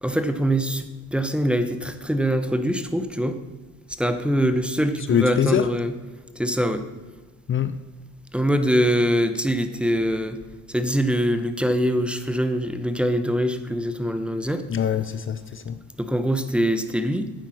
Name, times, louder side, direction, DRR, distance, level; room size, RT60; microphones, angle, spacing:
voice 1, 0.0-3.4 3.9-5.9 6.3-6.9 8.3-10.4 10.7-14.6 16.0-17.3, equal, 5° right, 0.9 m, -23 dB
voice 2, 5.1-5.7 7.5-7.8 14.7-15.8, left 8 dB, 40° left, 0.6 m, -23 dB
9.5 x 8.8 x 6.3 m
cardioid pair, 90°, 30 cm